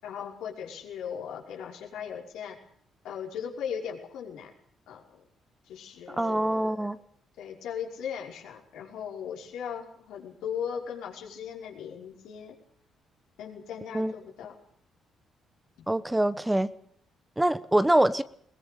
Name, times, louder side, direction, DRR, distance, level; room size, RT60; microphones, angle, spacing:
voice 1, 0.0-2.6 3.0-4.5 4.9-5.2 5.7-6.9 7.4-12.6 13.4-14.5, left 8 dB, 85° left, 0 dB, 5.5 m, -38 dB
voice 2, 6.1-7.0 13.9-14.1 15.9-16.7 17.4-18.2, right 1 dB, 10° right, 14 dB, 1.0 m, -24 dB
22.0 x 20.0 x 6.8 m, 0.65 s
cardioid pair, 90°, 0 cm